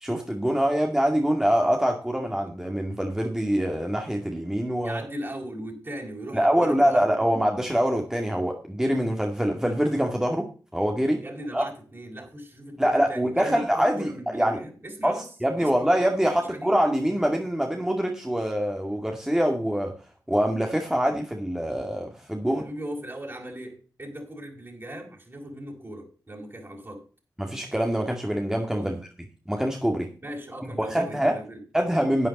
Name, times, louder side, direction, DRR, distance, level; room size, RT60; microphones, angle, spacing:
voice 1, 0.0-5.0 6.3-10.4 10.7-11.2 11.5-11.6 12.8-14.6 15.0-19.9 20.3-22.6 27.4-29.0 29.5-30.1 30.8-31.3 31.7-32.3, equal, 5° right, 2.2 m, -24 dB
voice 2, 4.8-7.3 11.2-15.3 15.6-15.9 16.4-16.7 22.5-27.1 28.7-29.0 30.2-31.6, right 1 dB, 35° right, 5.2 m, -38 dB
11.5 x 9.5 x 4.2 m
wide cardioid pair, 75°, 7 cm